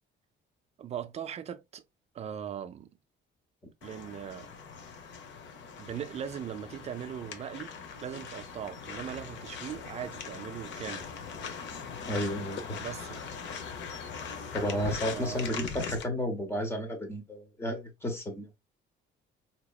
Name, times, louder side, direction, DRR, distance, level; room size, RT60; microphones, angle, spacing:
voice 1, 0.8-1.8 2.1-2.9 3.8-4.6 5.8-7.7 8.0-11.1 12.8-13.3 15.1-15.7, right 9 dB, 30° right, 0.4 m, -39 dB
sound 1, 3.8-16.0, left 6 dB, 65° left, 0.8 m, -41 dB
voice 2, 12.0-12.8 14.5-18.5, equal, 10° left, 0.9 m, -32 dB
4.5 x 2.8 x 2.3 m
cardioid pair, 165°, 21 cm